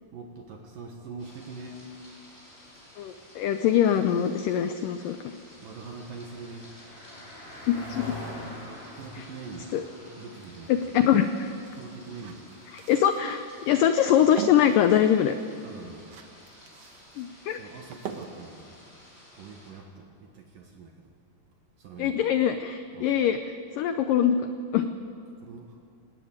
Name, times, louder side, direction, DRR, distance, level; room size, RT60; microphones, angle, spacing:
voice 1, 0.1-1.9 5.6-6.7 8.6-9.8 10.2-10.7 11.7-12.6 15.6-16.1 17.6-18.8 19.4-21.1 21.8-22.2 22.9-23.1 25.4-25.8, right 4 dB, 65° right, 2 dB, 2.8 m, -43 dB
sound 1, 1.2-19.7, left 1 dB, 15° left, 5.2 m, -53 dB
voice 2, 3.0-5.3 7.7-8.2 9.2-9.3 9.7-9.8 10.7-11.5 12.9-15.3 17.2-17.6 22.0-23.4 23.7-24.5 24.7-24.9, left 9 dB, 85° left, 9 dB, 1.9 m, -23 dB
Car passing by, 5.3-16.7, left 1 dB, 35° left, 8.5 m, -46 dB
sound 2, 8.9-19.8, right 7 dB, 80° right, 1.4 m, -44 dB
19.5 x 18.5 x 8.8 m, 2.4 s
omnidirectional pair, 4.8 m